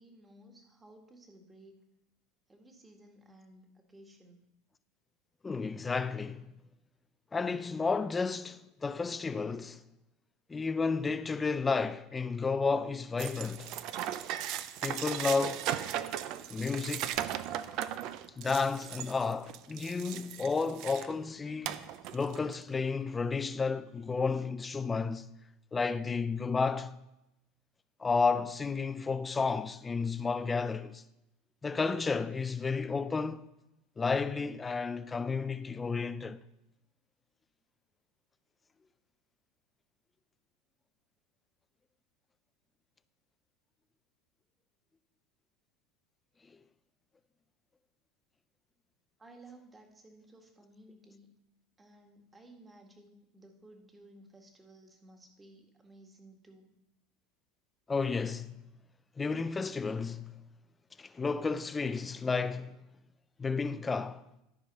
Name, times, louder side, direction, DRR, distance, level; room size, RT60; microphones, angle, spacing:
voice 1, 0.0-1.8 2.5-4.4 49.2-51.3 51.8-56.7, right 1 dB, 15° right, 1.7 m, -56 dB
voice 2, 5.4-6.5 7.3-9.8 10.5-13.7 14.8-15.7 16.5-17.2 18.4-25.3 25.7-27.0 28.0-31.0 31.6-33.5 34.0-36.4 57.9-58.6 59.2-60.4 61.0-62.8 63.4-64.2, left 4 dB, 20° left, 0.4 m, -32 dB
sound 1, 13.2-21.1 21.6-22.6, right 11 dB, 55° right, 0.5 m, -37 dB
12.5 x 4.9 x 5.4 m
supercardioid pair, 105°, 0 cm